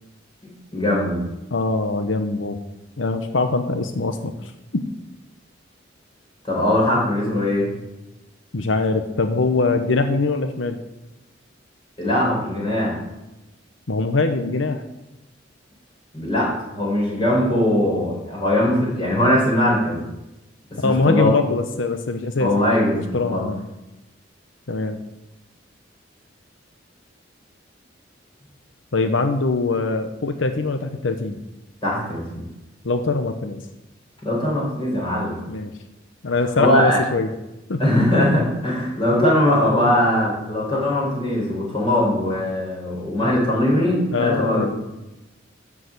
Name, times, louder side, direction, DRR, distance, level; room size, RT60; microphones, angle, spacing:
voice 1, 0.7-1.2 6.4-7.7 12.0-13.0 16.1-20.0 20.8-21.3 22.4-23.5 31.8-32.4 34.2-35.4 36.6-37.0 37.8-44.7, left 1 dB, 25° left, -4 dB, 4.8 m, -20 dB
voice 2, 1.5-2.6 3.0-4.9 8.5-10.8 13.9-14.8 20.8-23.6 24.7-25.0 28.9-31.4 32.8-33.6 35.5-35.7 36.2-37.3 37.7-37.8 44.1-44.7, left 3 dB, 90° left, 7 dB, 0.8 m, -23 dB
13.0 x 4.9 x 8.0 m, 0.97 s
head